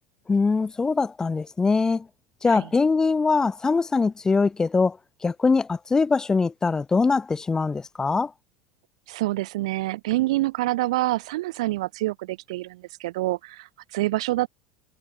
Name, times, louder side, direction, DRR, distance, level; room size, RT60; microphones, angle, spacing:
voice 1, 0.3-2.1 2.4-5.0 5.2-8.3, left 4 dB, 20° left, 1.3 m, -22 dB
voice 2, 9.1-14.5, right 18 dB, 75° right, 0.7 m, -27 dB
hypercardioid pair, 85°, 3 cm